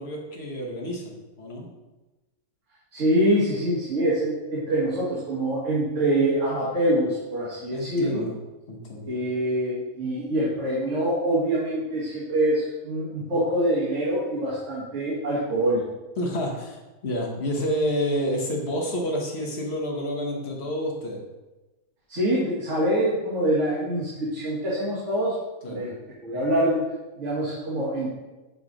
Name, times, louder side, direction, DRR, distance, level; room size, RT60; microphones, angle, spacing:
voice 1, 0.0-1.7 7.7-8.3 8.7-9.1 16.2-21.2 25.6-25.8, equal, 45° left, -1 dB, 1.2 m, -29 dB
voice 2, 2.9-8.2 9.1-15.8 22.1-25.3 25.7-26.8 27.2-28.1, right 1 dB, 50° right, -7 dB, 1.6 m, -25 dB
5.9 x 3.9 x 4.9 m, 1.1 s
omnidirectional pair, 1.8 m